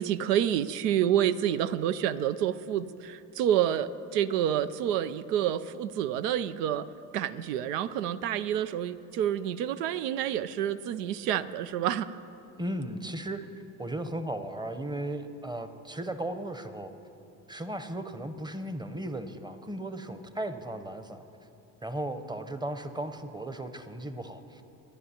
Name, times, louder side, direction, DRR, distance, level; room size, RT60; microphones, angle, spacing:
voice 1, 0.0-6.9 7.1-12.1, right 10 dB, 75° right, 14 dB, 0.6 m, -28 dB
voice 2, 12.6-13.5 13.8-16.9 17.5-21.2 21.8-24.6, right 1 dB, 10° right, 10 dB, 0.8 m, -36 dB
27.5 x 10.5 x 2.9 m, 2.8 s
hypercardioid pair, 65°, 49 cm